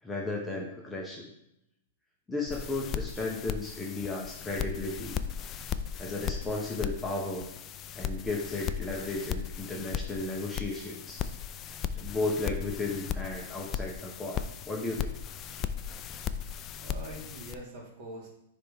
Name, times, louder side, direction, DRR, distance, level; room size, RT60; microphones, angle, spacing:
voice 1, 0.0-1.3 2.3-5.2 6.0-7.5 7.9-11.2 11.9-15.2, left 2 dB, 10° left, -2 dB, 0.9 m, -34 dB
sound 1, 2.5-17.5, left 8 dB, 25° left, 0.3 m, -37 dB
voice 2, 16.7-18.3, right 1 dB, 45° right, -2 dB, 2.4 m, -44 dB
9.5 x 3.5 x 3.5 m, 0.82 s
hypercardioid pair, 145°, 0 cm